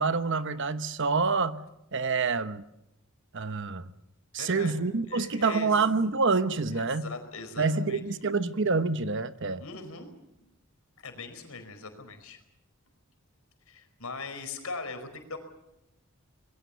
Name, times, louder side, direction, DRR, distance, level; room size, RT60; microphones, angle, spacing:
voice 1, 0.0-1.6 1.9-2.6 3.3-3.9 4.3-7.1 7.6-9.6, right 4 dB, 55° right, 1.1 m, -27 dB
voice 2, 4.4-4.8 5.1-5.8 6.7-8.0 9.6-10.1 10.4-10.5 11.0-12.4 13.7-15.4, left 3 dB, 75° left, 4.7 m, -40 dB
26.0 x 21.5 x 6.9 m
head